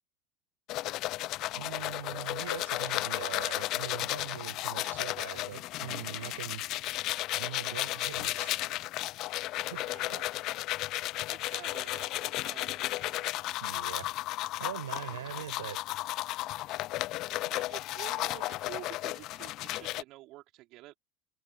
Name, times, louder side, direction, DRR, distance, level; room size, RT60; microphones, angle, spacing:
sound 1, 0.7-20.0, left 17 dB, 45° left, 0.4 m, -34 dB
voice 1, 1.6-6.9 7.3-8.6 9.7-9.9 13.6-14.1 14.6-15.8, right 11 dB, 70° right, 7.2 m, -42 dB
voice 2, 9.8-10.3 11.3-13.3 17.2-20.9, right 18 dB, 50° right, 4.1 m, -49 dB
figure-of-eight pair, 70°, 0 cm